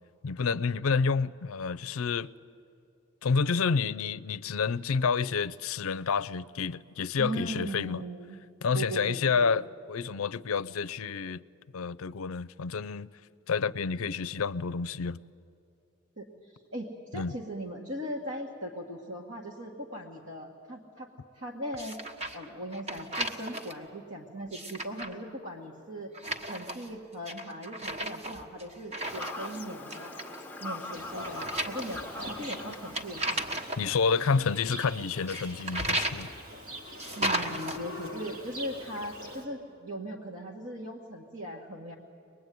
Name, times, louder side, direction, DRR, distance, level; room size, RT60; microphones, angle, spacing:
voice 1, 0.2-2.3 3.2-8.0 8.6-11.4 11.7-13.1 13.5-15.2 17.1-17.3 33.8-36.3, left 5 dB, 80° left, 0.5 m, -29 dB
voice 2, 7.2-8.4 8.7-9.6 16.2-22.0 22.3-26.1 26.4-30.2 30.6-33.5 37.2-42.0, right 1 dB, 55° right, 1.8 m, -39 dB
sound 1, 21.8-22.4 22.7-23.7 24.4-25.1 26.1-26.9 27.2-29.6 29.9-30.4 31.2-33.8 35.3-36.3 37.0-37.8, right 1 dB, 30° right, 1.4 m, -34 dB
Fowl / Bird vocalization bird call bird song, 29.0-34.0, left 2 dB, 10° left, 0.9 m, -42 dB
Livestock farm animals working animals, 30.9-39.4, equal, 75° right, 3.2 m, -44 dB
24.0 x 20.5 x 9.4 m
head